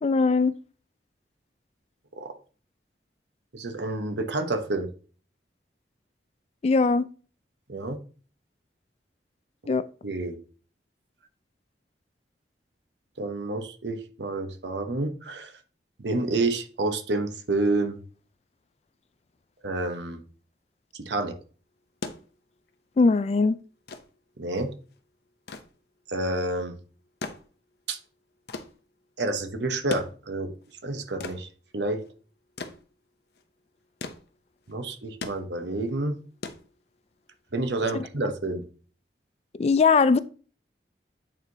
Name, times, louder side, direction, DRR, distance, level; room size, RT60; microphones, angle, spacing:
voice 1, 0.0-0.5 6.6-7.0 9.7-9.8 23.0-23.6 39.5-40.2, left 4 dB, 35° left, 0.3 m, -20 dB
voice 2, 3.5-4.9 7.7-8.0 10.0-10.4 13.2-15.5 16.0-18.0 19.6-20.2 20.9-21.3 24.4-24.7 26.1-26.7 27.9-28.0 29.2-30.5 30.8-31.5 31.7-32.0 34.7-36.1 37.5-38.6, right 2 dB, 80° right, 1.0 m, -29 dB
sound 1, 21.8-37.3 38.5-38.6, left 3 dB, 60° left, 0.7 m, -42 dB
8.8 x 4.6 x 2.8 m
head